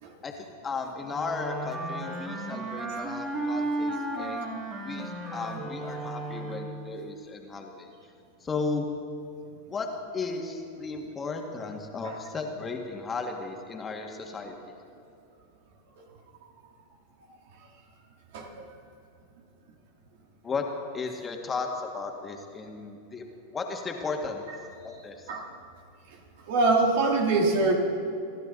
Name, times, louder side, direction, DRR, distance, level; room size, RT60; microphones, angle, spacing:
voice 1, 0.2-4.4 4.8-7.9 8.4-8.9 9.7-9.9 10.1-14.7 20.4-20.6 20.9-23.3 23.5-24.4 24.8-25.3, left 4 dB, 20° left, 2 dB, 2.1 m, -35 dB
Wind instrument woodwind instrument, 1.1-6.9, right 2 dB, 30° right, 2.8 m, -34 dB
voice 2, 26.5-27.7, right 3 dB, 65° right, 1 dB, 2.9 m, -23 dB
28.0 x 12.5 x 4.1 m, 2.5 s
hypercardioid pair, 100°, 0 cm